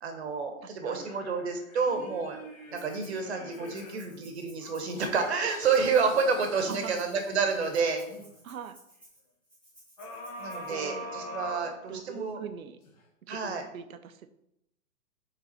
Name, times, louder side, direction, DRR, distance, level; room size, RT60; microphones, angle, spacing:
voice 1, 0.0-2.4 2.7-8.0 10.4-12.4 13.3-13.6, right 5 dB, 50° right, 5 dB, 1.3 m, -29 dB
voice 2, 0.8-1.2 6.6-7.0 8.4-8.8 10.7-11.1 11.9-12.8 13.3-14.3, right 8 dB, 70° right, 10 dB, 0.8 m, -42 dB
sound 1, 0.9-4.1 4.6-8.2 10.0-12.3 12.8-12.9, equal, 25° left, 1.0 m, -44 dB
Rattle (instrument), 2.7-3.2 3.5-10.7, right 1 dB, ahead, 0.7 m, -57 dB
6.9 x 4.0 x 4.4 m, 0.81 s
hypercardioid pair, 170°, 43 cm